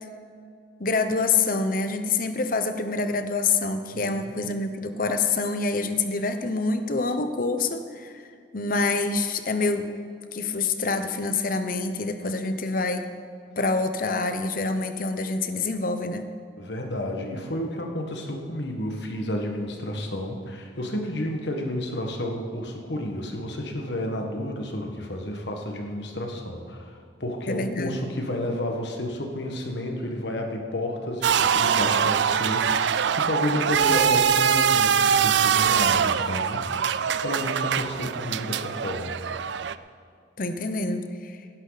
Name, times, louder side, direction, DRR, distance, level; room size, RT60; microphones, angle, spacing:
voice 1, 0.8-8.2 8.5-9.9 10.3-13.0 13.6-16.3 27.5-28.0 40.4-41.4, left 3 dB, 50° left, 9 dB, 0.9 m, -26 dB
voice 2, 3.9-4.4 16.6-36.7 37.2-39.1, left 1 dB, 75° left, 2 dB, 1.6 m, -31 dB
sound 1, 31.2-39.7, right 7 dB, 75° right, 0.4 m, -23 dB
17.5 x 11.0 x 4.1 m, 2.2 s
head